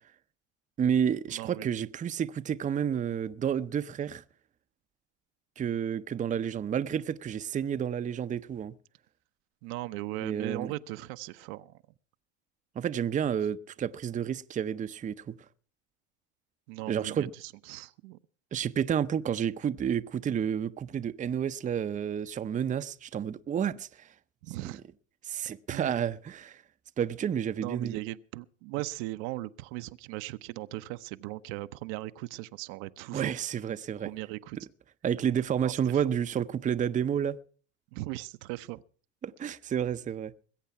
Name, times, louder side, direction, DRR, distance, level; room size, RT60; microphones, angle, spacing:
voice 1, 0.8-4.2 5.6-8.7 10.2-10.7 12.8-15.3 16.9-17.3 18.5-24.1 24.6-24.7 25.2-26.6 27.0-28.0 33.1-34.1 35.0-37.4 39.2-40.3, right 8 dB, 20° right, 0.6 m, -30 dB
voice 2, 1.3-1.7 9.6-11.8 16.7-18.2 24.4-24.8 25.7-26.0 27.6-33.3 34.0-34.6 35.6-35.7 37.9-38.8, right 18 dB, 65° right, 0.7 m, -38 dB
20.5 x 8.2 x 5.7 m
hypercardioid pair, 85°, 37 cm